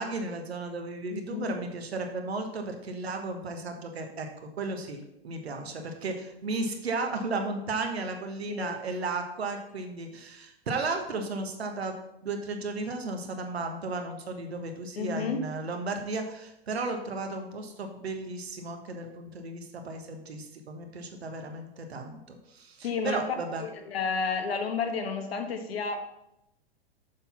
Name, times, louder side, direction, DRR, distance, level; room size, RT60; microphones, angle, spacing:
voice 1, 0.0-4.3 4.6-23.6, right 3 dB, 85° right, 4 dB, 1.3 m, -34 dB
voice 2, 1.1-1.6 8.5-8.8 15.0-15.4 22.8-23.2 23.6-26.0, left 5 dB, 75° left, 5 dB, 1.3 m, -31 dB
7.0 x 4.1 x 5.7 m, 0.86 s
hypercardioid pair, 110°, 31 cm